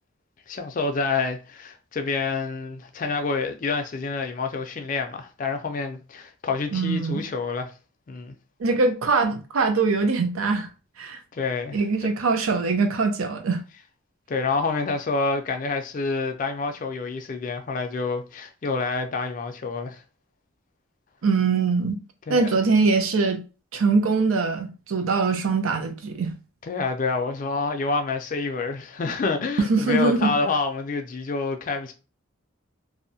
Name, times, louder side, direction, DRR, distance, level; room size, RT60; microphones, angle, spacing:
voice 1, 0.5-7.7 8.1-8.3 11.3-11.8 14.3-20.0 22.3-22.6 26.7-31.9, left 4 dB, 40° left, 0.4 m, -28 dB
voice 2, 6.7-7.2 8.6-10.7 11.0-11.2 11.7-13.6 21.2-22.0 22.3-23.4 23.7-26.4 29.6-30.3, right 4 dB, 90° right, 0.5 m, -22 dB
2.7 x 2.1 x 2.6 m
head